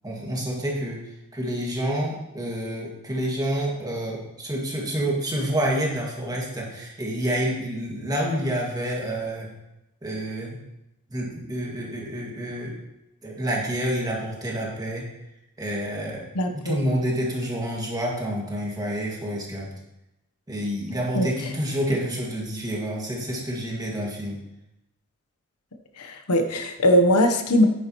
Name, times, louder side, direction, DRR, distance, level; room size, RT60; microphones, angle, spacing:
voice 1, 0.0-1.0 1.3-9.5 10.0-10.6 11.1-12.7 13.2-15.1 15.6-16.2 16.5-19.7 20.5-24.4, equal, 15° right, -3 dB, 1.9 m, -28 dB
voice 2, 16.3-16.8 21.1-21.3 26.0-27.6, equal, 85° left, 6 dB, 1.0 m, -20 dB
9.4 x 9.4 x 3.0 m, 0.90 s
head